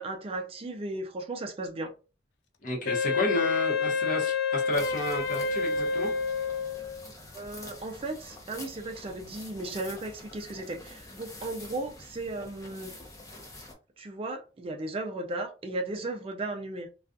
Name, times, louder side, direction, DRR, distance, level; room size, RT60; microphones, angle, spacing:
voice 1, 0.0-1.9 7.3-12.9 14.0-16.9, right 2 dB, 35° right, 0.4 m, -36 dB
voice 2, 2.6-6.1, left 2 dB, 50° left, 0.9 m, -31 dB
Wind instrument woodwind instrument, 2.9-7.1, left 4 dB, 85° left, 0.3 m, -28 dB
sound 1, 4.7-13.7, left 2 dB, 20° left, 0.6 m, -47 dB
2.3 x 2.3 x 2.5 m
head